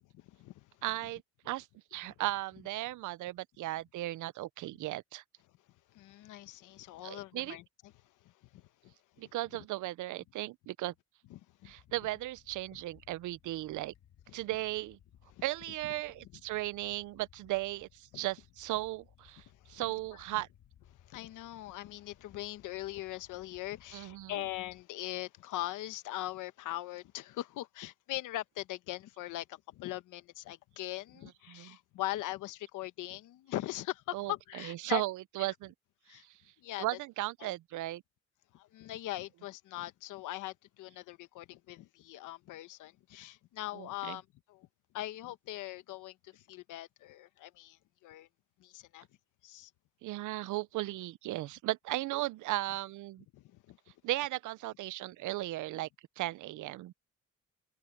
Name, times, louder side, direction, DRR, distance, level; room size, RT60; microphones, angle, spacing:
voice 1, 0.0-0.7 5.9-7.6 8.5-8.9 11.3-11.7 14.3-14.4 18.1-18.2 19.7-19.8 20.3-20.4 21.1-35.0 35.4-35.5 36.1-36.2 36.6-36.8 37.4-37.6 38.5-44.7 44.9-48.3 48.6-49.1 49.4-49.7 53.3-53.8, left 16 dB, 90° left, 1.1 m, -41 dB
voice 2, 0.8-5.2 7.0-7.6 9.2-10.9 11.6-13.9 14.3-15.0 15.4-20.5 23.9-24.4 31.5-31.8 34.1-35.7 36.1-36.2 36.8-38.0 43.7-44.2 50.0-53.2 54.0-55.9 56.2-56.9, right 17 dB, 80° right, 0.6 m, -36 dB
sound 1, 11.7-24.8, left 10 dB, 65° left, 1.9 m, -63 dB
cardioid pair, 90°, 30 cm